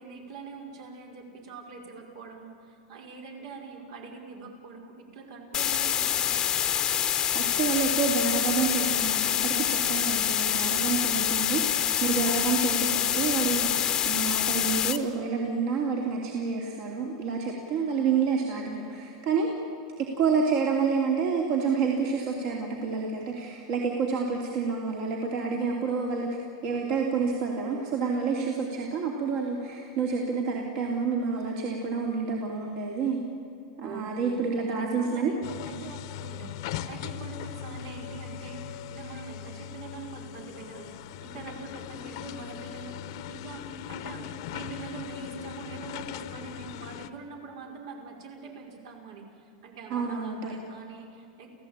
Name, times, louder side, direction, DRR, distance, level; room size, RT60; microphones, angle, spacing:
voice 1, 0.0-6.5 27.9-28.6 33.8-35.4 35.6-51.5, right 4 dB, 65° right, 2 dB, 5.3 m, -43 dB
sound 1, 5.5-15.0, left 10 dB, 20° left, 1.1 m, -26 dB
voice 2, 7.3-19.5 20.2-26.3 26.6-33.2 33.8-35.3 49.9-50.5, right 5 dB, 45° right, 0 dB, 2.9 m, -28 dB
sound 2, 35.4-47.1, left 10 dB, 55° left, 1.1 m, -39 dB
28.5 x 16.0 x 8.9 m, 2.7 s
supercardioid pair, 160°, 3 cm